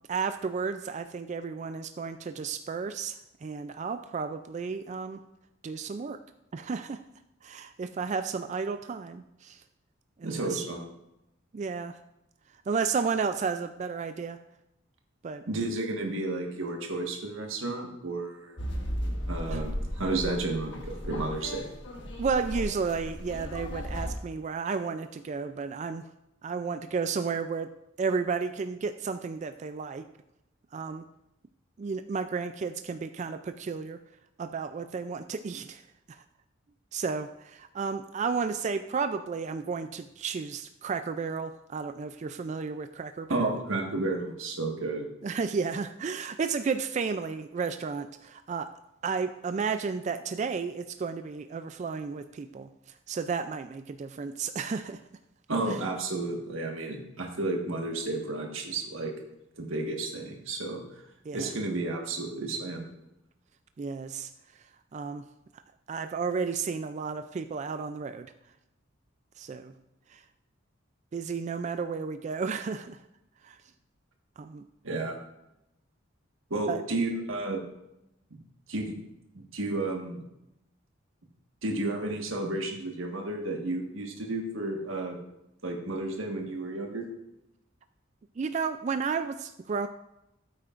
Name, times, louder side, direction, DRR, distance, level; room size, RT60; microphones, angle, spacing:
voice 1, 0.0-5.2 5.6-6.2 6.5-7.0 7.4-9.6 10.2-10.6 11.5-12.0 12.7-14.4 15.2-15.4 19.5-19.6 22.2-26.0 26.4-27.7 28.0-30.1 30.7-31.0 31.8-34.0 34.4-35.8 36.1-36.2 36.9-43.6 45.2-48.7 49.0-52.7 53.1-55.0 55.7-55.8 61.3-61.5 63.8-64.3 64.9-65.3 65.9-68.3 69.4-69.7 70.1-70.2 71.1-73.0 73.4-73.6 74.4-74.6 76.7-76.8 88.4-89.9, right 5 dB, 35° right, 9 dB, 0.3 m, -32 dB
voice 2, 10.2-10.8 15.5-18.7 19.3-21.7 43.3-45.1 55.5-59.1 59.6-60.8 61.3-62.9 74.8-75.2 76.5-77.6 78.7-78.9 79.3-80.2 81.6-85.2 85.6-87.0, right 2 dB, 80° right, 1 dB, 1.5 m, -32 dB
sound 1, 18.6-24.1, equal, 60° left, 1.4 m, -35 dB
13.0 x 8.5 x 2.5 m, 0.87 s
head